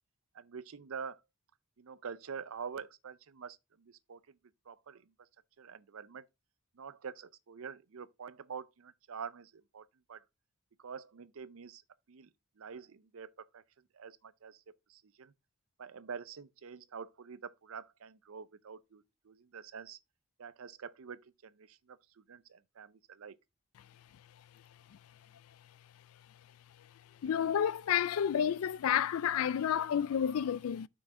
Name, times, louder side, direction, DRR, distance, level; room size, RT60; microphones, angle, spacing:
voice 1, 0.3-1.2 1.8-4.4 4.7-5.0 5.6-6.2 6.8-10.2 10.8-11.8 12.1-12.3 12.6-13.6 13.9-14.6 14.9-15.3 15.8-20.0 20.4-22.0 22.3-23.4, right 6 dB, 65° right, 0.5 m, -46 dB
voice 2, 27.2-30.9, left 9 dB, 70° left, 0.3 m, -30 dB
5.9 x 4.8 x 4.7 m
head